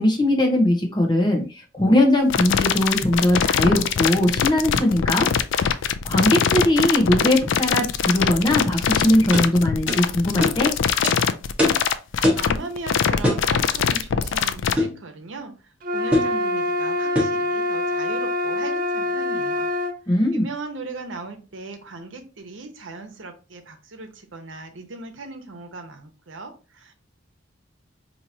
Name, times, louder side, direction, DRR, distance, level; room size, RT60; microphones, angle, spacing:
voice 1, 0.0-5.3 5.6-5.7 6.0-10.7 20.1-20.4, left 1 dB, 25° left, 1 dB, 0.9 m, -20 dB
sound 1, 2.3-14.7, left 7 dB, 70° left, 0.3 m, -22 dB
sound 2, 8.9-9.0 9.3-9.5 9.9-10.0 10.4-10.6 11.0-11.2 11.6-11.8 12.2-12.5 13.2-13.5 14.8-15.0 16.1-16.4 17.1-17.4, left 1 dB, 5° right, 1.3 m, -22 dB
voice 2, 12.3-19.7 20.1-26.9, right 3 dB, 75° right, 6 dB, 0.8 m, -38 dB
sound 3, 15.8-20.0, left 1 dB, 45° right, 0.5 m, -25 dB
4.6 x 2.9 x 2.7 m, 0.33 s
head